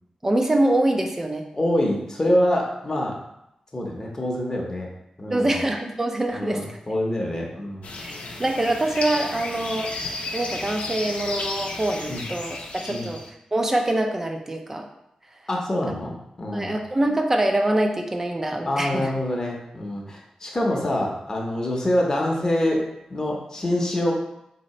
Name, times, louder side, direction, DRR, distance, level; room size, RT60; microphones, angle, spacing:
voice 1, 0.2-1.4 5.3-6.8 8.0-9.9 10.3-13.2 13.5-14.9 15.9-16.0 16.5-19.1, right 1 dB, 20° right, 3 dB, 0.5 m, -24 dB
voice 2, 1.5-3.2 3.7-4.9 5.2-5.6 6.3-7.9 12.1-12.3 12.9-13.1 15.5-16.8 18.6-22.8 23.1-24.1, left 1 dB, 25° left, -2 dB, 0.8 m, -25 dB
sound 1, 7.8-13.3, left 3 dB, 85° left, 0.6 m, -33 dB
4.1 x 2.8 x 4.1 m, 0.83 s
wide cardioid pair, 135°, 2 cm